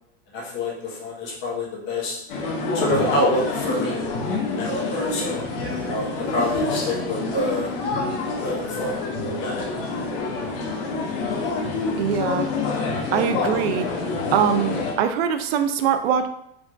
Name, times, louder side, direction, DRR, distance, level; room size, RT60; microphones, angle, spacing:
voice 1, 0.3-2.2 2.7-4.0 4.6-7.7 8.4-9.7, left 1 dB, 35° left, -3 dB, 1.3 m, -27 dB
sound 1, 2.3-14.9, left 3 dB, 60° left, 1.3 m, -27 dB
voice 2, 12.0-12.5 13.1-13.9 14.3-16.3, right 8 dB, 65° right, 9 dB, 0.6 m, -22 dB
4.7 x 3.8 x 2.5 m, 0.76 s
supercardioid pair, 160°, 33 cm